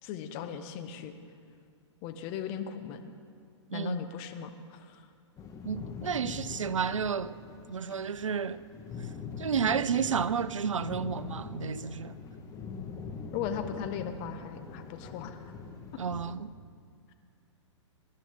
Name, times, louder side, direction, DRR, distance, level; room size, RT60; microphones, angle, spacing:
voice 1, 0.0-1.1 2.0-3.1 3.7-5.1 13.3-15.5, left 8 dB, 35° left, 1.3 m, -38 dB
voice 2, 3.7-4.1 5.6-7.4 7.7-8.6 9.4-12.1 16.0-16.5, right 7 dB, 85° right, 0.6 m, -31 dB
sound 1, 5.4-16.3, left 5 dB, 20° left, 1.5 m, -42 dB
25.5 x 11.5 x 3.8 m
hypercardioid pair, 120°, 16 cm